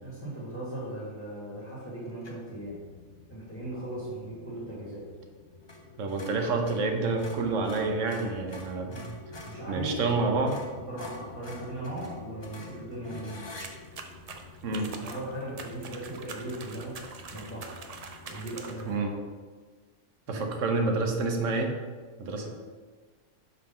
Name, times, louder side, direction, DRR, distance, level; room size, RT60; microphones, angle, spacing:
voice 1, 0.0-2.8 3.3-5.1 9.4-10.1 10.8-13.6 14.7-17.0 17.3-17.8 18.3-19.1 20.3-20.7 22.3-22.5, right 1 dB, 10° left, -8 dB, 1.8 m, -38 dB
sound 1, 2.2-2.5 5.6-5.8 6.1-9.6 10.1-10.2 10.5-13.7, left 2 dB, 25° left, 0.6 m, -46 dB
sound 2, 2.5-19.2, left 3 dB, 65° left, 1.1 m, -50 dB
voice 2, 6.0-9.1 9.7-10.6 14.6-14.9 18.8-19.1 20.3-21.7 22.2-22.5, right 3 dB, 75° right, 4 dB, 1.1 m, -28 dB
sound 3, 13.6-19.0, right 4 dB, 60° right, 0.4 m, -44 dB
5.5 x 4.0 x 5.4 m, 1.4 s
omnidirectional pair, 1.3 m